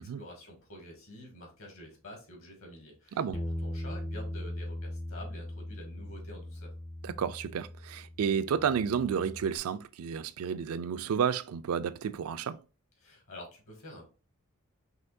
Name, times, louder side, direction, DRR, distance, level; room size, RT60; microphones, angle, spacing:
voice 1, 0.0-6.7 13.0-14.1, left 1 dB, 65° left, 2.2 m, -48 dB
Bass guitar, 3.3-9.6, left 1 dB, 15° left, 0.4 m, -39 dB
voice 2, 7.0-12.6, right 7 dB, 75° right, 0.3 m, -31 dB
5.6 x 3.0 x 2.6 m
head